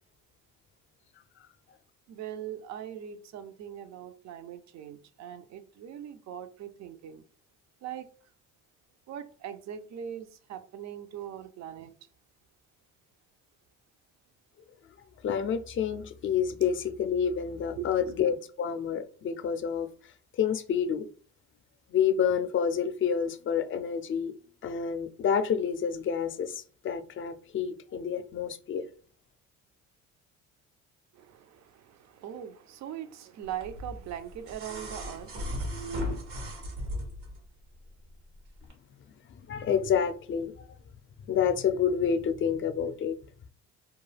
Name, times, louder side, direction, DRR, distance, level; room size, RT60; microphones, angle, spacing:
voice 1, 2.1-7.2 7.8-8.1 9.1-11.9 17.8-18.2 31.1-36.2, right 10 dB, 60° right, 0.5 m, -41 dB
voice 2, 15.2-19.9 20.4-21.0 21.9-24.3 24.6-28.8 39.5-40.5 41.3-43.1, left 7 dB, 40° left, 0.4 m, -28 dB
sound 1, 33.6-37.4 38.6-38.7, equal, 80° right, 1.0 m, -36 dB
2.3 x 2.3 x 3.2 m
supercardioid pair, 75°, 32 cm